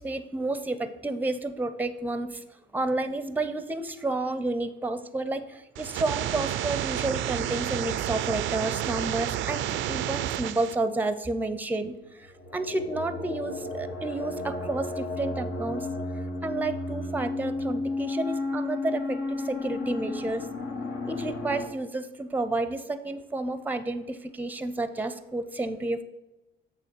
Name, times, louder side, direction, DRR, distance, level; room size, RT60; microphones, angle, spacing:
voice 1, 0.0-2.4 2.7-15.9 16.4-20.5 21.0-26.0, right 2 dB, 10° right, 11 dB, 0.5 m, -31 dB
sound 1, 5.7-10.7, right 12 dB, 75° right, 0.4 m, -30 dB
sound 2, 12.3-21.7, left 2 dB, 80° left, 1.3 m, -33 dB
8.3 x 3.5 x 6.0 m, 1.0 s
cardioid pair, 90°, 20 cm